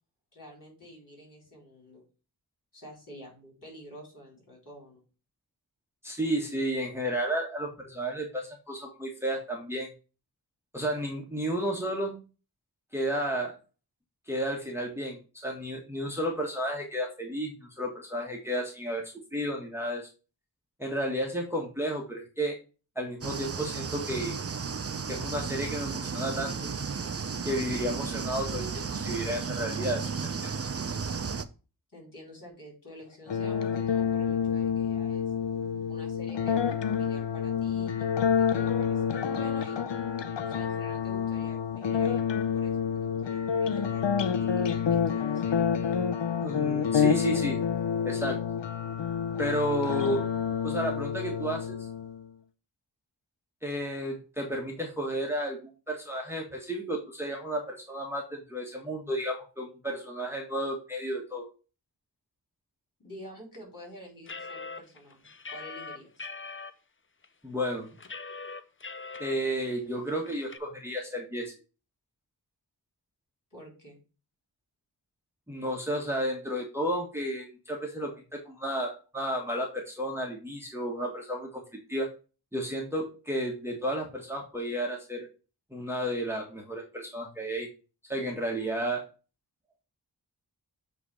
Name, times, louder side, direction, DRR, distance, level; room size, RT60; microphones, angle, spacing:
voice 1, 0.3-2.0 2.7-5.0 31.9-35.3 35.9-39.9 40.5-42.3 42.5-45.8 63.0-66.3 73.5-74.0, equal, 50° left, -1 dB, 4.5 m, -49 dB
voice 2, 6.0-9.9 10.7-12.1 12.9-13.5 14.3-20.1 20.8-22.6 22.9-24.3 25.1-26.5 27.4-30.5 46.4-47.6 48.0-48.4 49.4-50.2 50.6-51.8 53.6-61.5 67.4-67.9 69.2-71.5 75.5-81.6 81.9-82.1 82.5-85.3 85.7-87.7 88.1-89.1, equal, 5° right, -1 dB, 1.5 m, -32 dB
sound 1, 23.2-31.4, right 5 dB, 35° right, 0.6 m, -34 dB
sound 2, 33.3-52.3, left 7 dB, 85° left, 0.7 m, -28 dB
sound 3, 64.3-66.7 67.2-67.3 67.6-69.3 69.7-69.8 70.1-70.6, left 4 dB, 30° left, 0.6 m, -41 dB
8.2 x 3.4 x 4.9 m, 0.33 s
wide cardioid pair, 95°, 42 cm